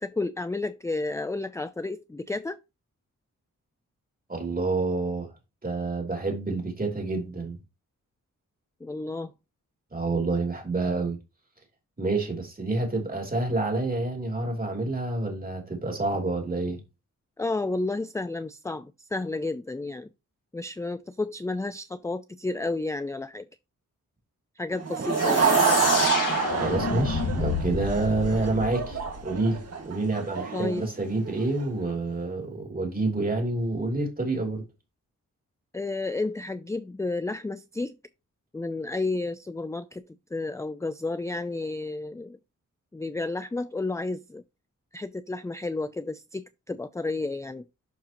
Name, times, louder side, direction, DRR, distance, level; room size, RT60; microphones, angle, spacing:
voice 1, 0.0-2.6 8.8-9.3 17.4-20.1 20.5-23.5 24.6-25.8 30.5-30.8 35.7-37.9 38.5-40.0 40.3-42.4 42.9-44.4 44.9-47.6, left 2 dB, 10° left, 0.3 m, -31 dB
voice 2, 4.3-5.3 5.6-7.6 9.9-11.2 12.0-16.8 26.5-34.6, right 2 dB, 25° right, 2.9 m, -28 dB
Laughter / Crowd, 24.7-31.6, right 5 dB, 50° right, 1.8 m, -27 dB
sound 1, 25.1-29.7, left 5 dB, 75° left, 1.9 m, -30 dB
11.5 x 4.7 x 3.0 m
wide cardioid pair, 110°, 32 cm